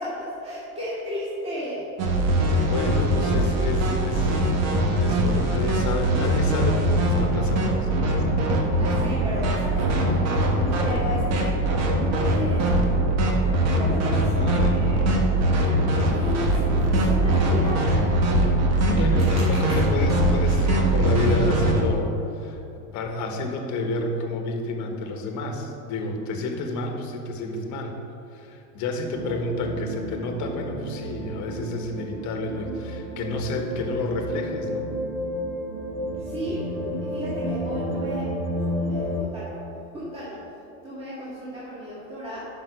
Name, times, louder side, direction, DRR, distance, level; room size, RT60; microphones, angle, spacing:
voice 1, 0.0-1.9 8.8-11.6 12.0-12.9 13.7-15.4 16.1-18.0 18.9-19.1 19.4-19.8 36.2-36.7 37.0-39.6 39.9-40.4 40.8-42.5, equal, 15° right, -8 dB, 1.9 m, -34 dB
sound 1, 2.0-21.8, right 1 dB, 40° right, 1.5 m, -22 dB
voice 2, 2.7-4.4 4.9-8.4 14.3-14.8 18.8-22.6 22.9-28.0 28.3-34.9, left 2 dB, 45° left, 3 dB, 1.5 m, -30 dB
sound 2, 29.1-39.2, equal, 60° right, 1.3 m, -31 dB
9.6 x 6.1 x 6.2 m, 2.8 s
supercardioid pair, 140°, 39 cm